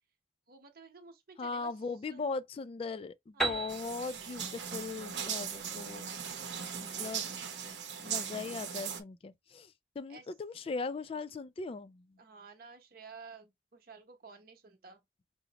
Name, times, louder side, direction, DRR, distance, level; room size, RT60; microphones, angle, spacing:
voice 1, 0.5-1.7 2.1-2.3 3.3-3.7 10.1-10.3 12.2-15.0, right 4 dB, 55° right, 0.9 m, -52 dB
voice 2, 1.4-6.1 6.8-7.3 8.0-12.2, left 4 dB, 35° left, 0.3 m, -39 dB
Piano, 3.4-7.1, right 2 dB, ahead, 1.0 m, -39 dB
sound 1, 3.7-9.0, right 7 dB, 90° right, 0.8 m, -39 dB
5.0 x 2.0 x 2.8 m
head